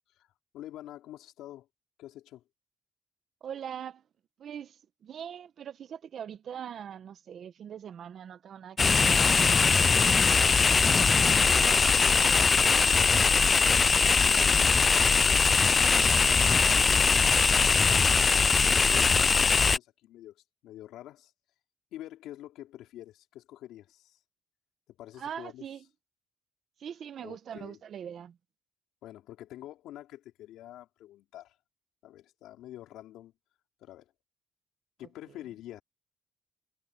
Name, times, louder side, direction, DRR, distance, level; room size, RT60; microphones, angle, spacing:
voice 1, 0.5-1.7 2.0-2.4 10.9-13.7 14.2-15.7 16.3-17.4 17.9-21.3 21.9-24.2 24.9-25.6 27.2-27.8 29.0-31.6 32.0-33.3 33.8-34.1 35.0-35.8, left 13 dB, 90° left, 4.2 m, -47 dB
voice 2, 3.4-4.0 4.4-9.9 25.2-25.8 26.8-28.4, right 8 dB, 60° right, 1.2 m, -42 dB
sound 1, 8.8-19.8, left 5 dB, 35° left, 0.4 m, -22 dB
cardioid pair, 90°, 0 cm